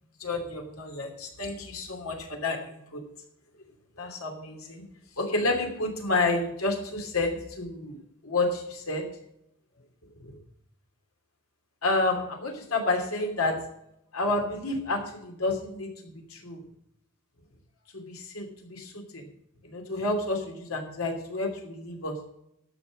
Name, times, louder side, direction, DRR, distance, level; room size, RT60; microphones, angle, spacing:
voice 1, 0.2-3.0 4.0-4.8 5.2-8.0 8.2-9.0 11.8-13.6 14.1-16.6 17.9-19.3 19.6-22.2, left 2 dB, 85° left, 3 dB, 2.8 m, -30 dB
13.0 x 5.8 x 7.3 m, 0.78 s
head